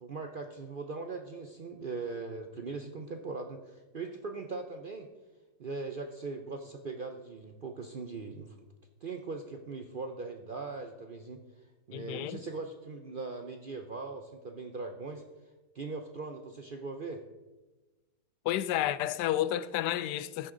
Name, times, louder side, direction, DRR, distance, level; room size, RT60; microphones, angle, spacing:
voice 1, 0.0-5.1 5.6-8.5 9.0-11.4 11.9-15.2 15.7-17.2, right 3 dB, 55° right, 0.6 m, -40 dB
voice 2, 11.9-12.4 18.4-20.5, left 12 dB, 90° left, 1.2 m, -31 dB
13.5 x 9.7 x 3.8 m
omnidirectional pair, 1.7 m